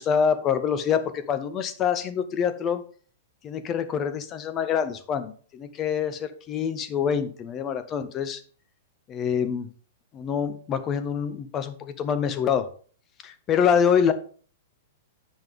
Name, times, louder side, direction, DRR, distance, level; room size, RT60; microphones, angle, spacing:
voice 1, 0.0-2.8 3.4-8.4 9.1-9.7 10.1-12.7 13.2-14.1, left 7 dB, 30° left, 10 dB, 1.0 m, -25 dB
9.3 x 5.5 x 3.6 m, 0.44 s
figure-of-eight pair, 105°, 0 cm